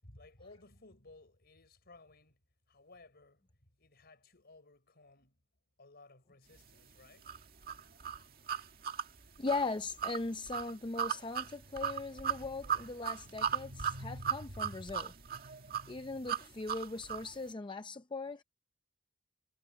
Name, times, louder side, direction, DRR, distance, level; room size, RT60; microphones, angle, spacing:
voice 1, 0.0-2.4 2.7-5.4 5.8-7.3, left 2 dB, 55° left, 5.0 m, -59 dB
sound 1, 7.3-17.3, right 7 dB, 50° right, 1.9 m, -37 dB
voice 2, 9.4-15.1 15.9-18.4, left 3 dB, 25° left, 0.6 m, -39 dB
head